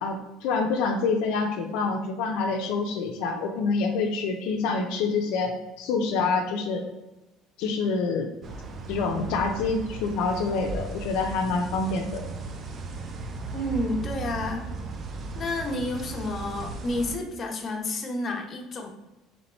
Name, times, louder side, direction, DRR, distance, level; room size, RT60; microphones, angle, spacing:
voice 1, 0.0-6.9 7.6-8.3 8.9-12.2, left 4 dB, 75° left, 3 dB, 0.4 m, -27 dB
sound 1, 8.4-17.2, right 3 dB, 40° right, 0.4 m, -36 dB
voice 2, 13.5-14.7 15.4-18.9, left 1 dB, 35° left, 2 dB, 0.7 m, -30 dB
3.0 x 2.8 x 4.2 m, 0.99 s
supercardioid pair, 110°, 0 cm